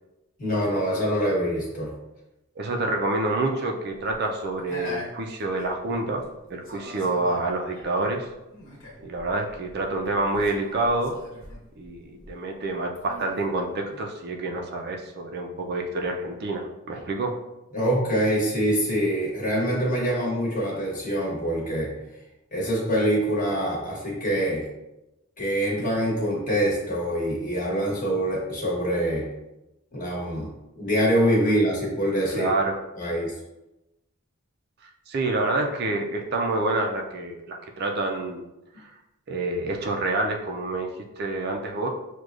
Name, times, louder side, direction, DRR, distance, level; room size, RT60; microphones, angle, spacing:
voice 1, 0.4-1.9 17.7-21.9 22.5-24.7 25.4-29.3 29.9-30.5 30.8-32.5 33.0-33.3, equal, 35° left, -4 dB, 1.1 m, -25 dB
voice 2, 2.6-6.2 6.5-8.3 9.0-11.2 11.8-17.4 32.3-32.8 35.1-38.4 38.8-38.9 39.3-40.9 41.2-41.9, right 2 dB, 45° right, 2 dB, 0.4 m, -27 dB
sound 1, 3.9-6.3 6.6-12.6 12.9-14.0, equal, 60° left, 1.2 m, -42 dB
6.1 x 2.2 x 2.4 m, 0.96 s
head